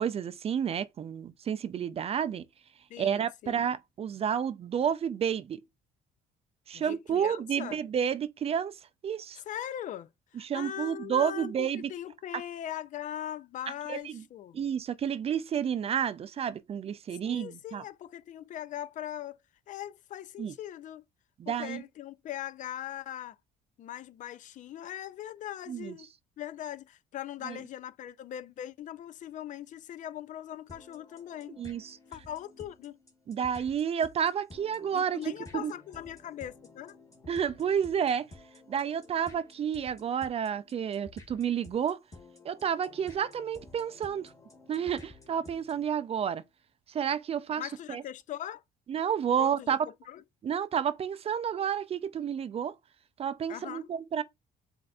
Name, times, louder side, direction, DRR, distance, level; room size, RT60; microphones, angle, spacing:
voice 1, 0.0-2.4 3.0-5.6 6.7-8.7 9.0-9.4 10.4-11.9 13.9-14.2 14.5-17.8 20.4-20.5 21.4-21.8 25.7-25.9 27.4-27.6 31.6-32.0 33.3-35.7 37.3-38.3 38.7-42.0 42.4-44.3 44.7-46.4 46.9-47.6 47.9-48.0 48.9-49.8 50.4-52.7 53.2-54.2, right 8 dB, 35° right, 0.4 m, -30 dB
voice 2, 2.9-3.7 6.7-7.8 9.5-14.6 17.2-19.4 19.7-21.0 21.5-23.4 23.8-26.1 26.4-31.6 32.1-33.0 34.9-37.0 47.5-48.6 49.4-49.8 50.1-50.2 53.5-53.9, left 11 dB, 50° left, 0.4 m, -40 dB
sound 1, 30.7-45.9, left 2 dB, 20° left, 1.7 m, -53 dB
7.4 x 2.6 x 2.3 m
cardioid pair, 110°, 17 cm